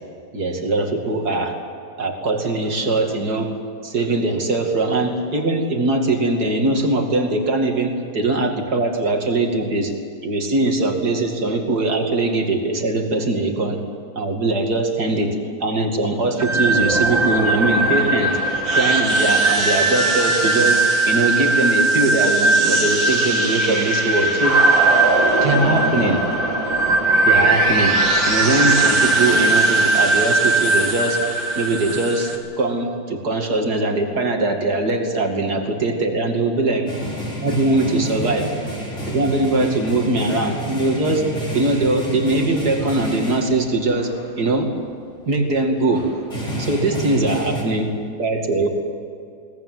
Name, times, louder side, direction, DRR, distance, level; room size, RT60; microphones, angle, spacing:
voice 1, 0.3-1.5 2.0-3.5 3.8-9.9 10.2-13.8 14.2-15.3 15.6-18.4 18.7-24.6 25.4-26.2 27.3-28.0 28.3-31.2 31.6-36.9 37.4-38.5 39.0-41.3 41.5-44.7 45.3-46.1 46.6-47.9 48.2-48.7, right 2 dB, 55° right, 3 dB, 2.9 m, -21 dB
sound 1, 16.4-32.4, right 2 dB, 80° right, 3.4 m, -18 dB
sound 2, 36.9-43.7 44.0-44.3 45.1-45.2 45.6-45.7 45.9-47.6, equal, 40° left, 4.9 m, -30 dB
22.5 x 18.5 x 9.4 m, 2.4 s
omnidirectional pair, 2.1 m